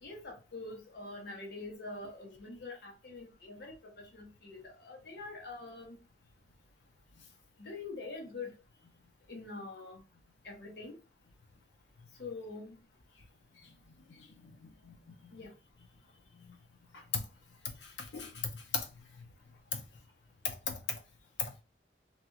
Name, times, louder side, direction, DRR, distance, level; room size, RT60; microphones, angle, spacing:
voice 1, 0.0-6.0 7.6-8.6 9.3-10.0 10.4-11.0 12.2-12.8 15.3-15.5, left 3 dB, 65° left, 0.9 m, -45 dB
voice 2, 14.4-15.0 17.1-17.2 18.0-18.9 19.7-19.8 20.4-20.8 21.4-21.5, left 5 dB, 85° left, 0.7 m, -36 dB
3.0 x 2.9 x 2.3 m
head